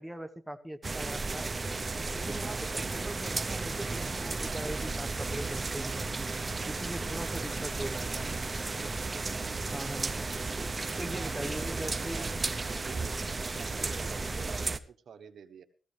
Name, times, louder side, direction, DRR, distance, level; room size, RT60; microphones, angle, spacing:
voice 1, 0.0-1.5 2.0-6.1 6.7-8.5 9.7-10.1 11.0-12.3, right 1 dB, 5° right, 6 dB, 1.3 m, -41 dB
sound 1, 0.8-14.8, right 3 dB, 30° right, 0.8 m, -34 dB
sound 2, 3.0-14.6, left 2 dB, 45° left, 4.0 m, -52 dB
voice 2, 10.9-13.1 13.6-15.6, right 7 dB, 75° right, 9 dB, 1.2 m, -49 dB
17.5 x 14.5 x 3.4 m, 0.41 s
cardioid pair, 95°, 0 cm